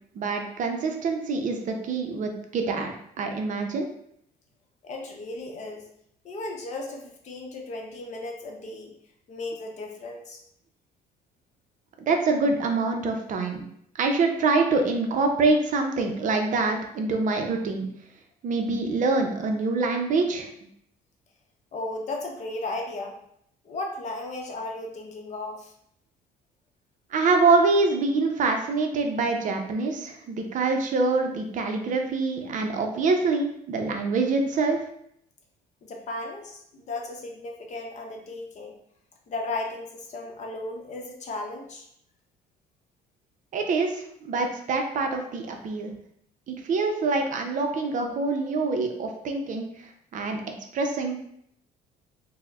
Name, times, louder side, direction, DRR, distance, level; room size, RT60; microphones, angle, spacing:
voice 1, 0.2-2.9 3.2-3.9 12.1-13.6 14.0-17.9 18.4-20.5 27.1-34.8 43.5-45.9 46.5-49.7 50.1-50.4 50.7-51.2, right 3 dB, 50° right, 4 dB, 0.5 m, -25 dB
voice 2, 4.8-5.9 6.2-8.9 9.3-10.4 21.7-23.1 23.6-25.7 35.8-38.7 39.3-41.9, left 2 dB, 45° left, 1 dB, 0.7 m, -35 dB
4.4 x 2.1 x 2.3 m, 0.71 s
cardioid pair, 110°, 17 cm